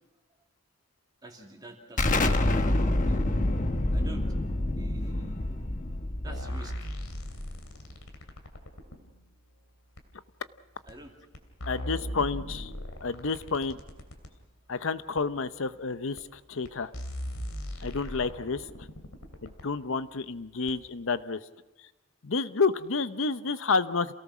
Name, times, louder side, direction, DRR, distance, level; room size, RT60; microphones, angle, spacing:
voice 1, 1.2-3.2 3.9-4.3 4.8-5.6 6.2-6.8 10.9-11.1, right 1 dB, 20° right, 1 dB, 2.5 m, -47 dB
Explosion, 2.0-7.4, left 1 dB, 35° left, 1.2 m, -27 dB
sound 1, 6.3-9.0 10.0-10.1 10.9-11.0 11.3-14.3 15.2-15.3 16.2-16.3 16.6-16.7 16.9-19.7 20.7-20.8, equal, 80° left, 2.9 m, -38 dB
voice 2, 11.7-12.7 13.0-13.8 14.7-16.9 17.8-18.7 19.4-21.4 22.2-24.1, left 4 dB, 65° left, 13 dB, 0.8 m, -30 dB
28.0 x 18.0 x 6.1 m, 1.1 s
head